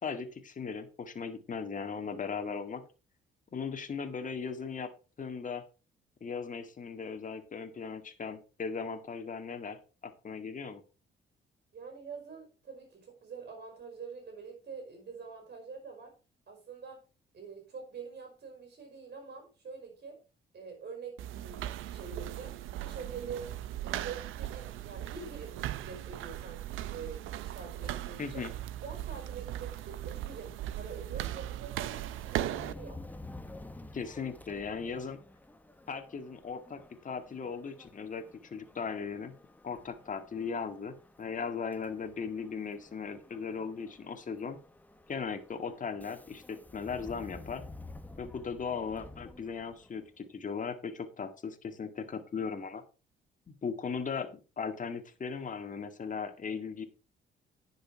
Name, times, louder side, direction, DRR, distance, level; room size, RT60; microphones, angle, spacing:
voice 1, 0.0-2.8 3.5-4.9 5.2-5.6 6.2-9.8 10.0-10.8 28.2-28.5 33.9-35.2 35.9-39.3 39.6-44.6 45.1-47.6 48.2-52.8 53.5-56.9, left 5 dB, 40° left, 7 dB, 1.9 m, -38 dB
voice 2, 11.7-16.1 16.5-17.0 17.3-20.2 20.5-23.5 23.8-26.6 26.9-28.4 28.8-33.0, right 5 dB, 55° right, 2 dB, 4.8 m, -45 dB
sound 1, 21.2-32.7, right 13 dB, 90° right, 0.7 m, -38 dB
Subway metro underground, 31.8-50.1, left 2 dB, 10° left, 1.2 m, -51 dB
10.5 x 6.5 x 4.7 m, 0.33 s
cardioid pair, 90°, 20 cm